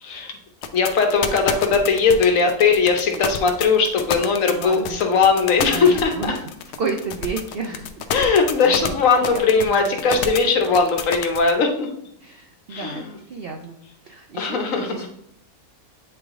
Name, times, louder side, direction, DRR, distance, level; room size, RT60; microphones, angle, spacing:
voice 1, 0.0-0.3 0.7-6.3 8.1-11.9 12.7-13.0 14.3-15.1, left 5 dB, 60° left, 4 dB, 1.1 m, -19 dB
sound 1, 0.6-11.5, left 8 dB, 85° left, 1.2 m, -28 dB
voice 2, 4.6-5.0 5.6-6.5 6.8-8.3 8.6-8.9 9.2-10.1 12.2-13.8 14.0-15.1, right 4 dB, 75° right, 3 dB, 0.5 m, -32 dB
8.1 x 3.3 x 3.6 m, 0.72 s
omnidirectional pair, 1.7 m